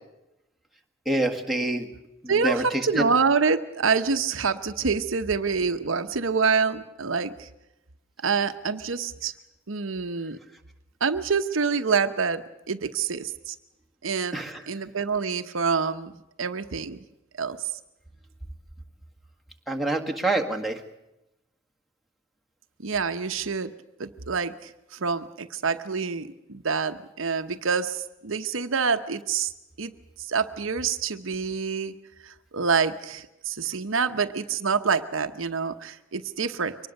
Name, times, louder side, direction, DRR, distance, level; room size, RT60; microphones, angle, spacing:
voice 1, 1.1-1.9 2.2-3.1 14.3-14.6 19.7-20.8, right 2 dB, ahead, 0 dB, 1.8 m, -26 dB
voice 2, 2.3-7.5 8.2-9.3 9.7-10.4 11.0-13.6 14.0-16.1 16.4-17.0 17.4-17.6 22.8-23.7 24.0-29.5 29.8-29.9 30.2-31.9 32.2-36.8, right 5 dB, 65° right, 8 dB, 0.9 m, -26 dB
23.5 x 19.5 x 6.6 m, 0.92 s
head